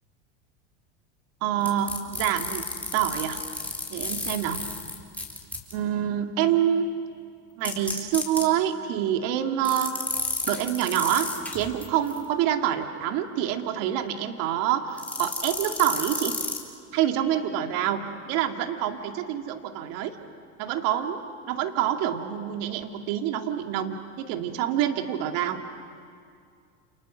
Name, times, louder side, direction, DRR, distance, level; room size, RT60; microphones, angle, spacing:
voice 1, 1.4-2.6 2.9-3.4 3.9-4.7 5.7-6.9 7.6-10.0 10.4-16.4 16.9-20.2 20.6-25.6, right 10 dB, 60° right, 5 dB, 2.5 m, -27 dB
sound 1, 1.7-5.7 7.6-8.4 9.6-12.2 15.0-16.6, left 2 dB, 5° left, 4.3 m, -32 dB
30.0 x 29.5 x 6.4 m, 2.3 s
hypercardioid pair, 95°, 38 cm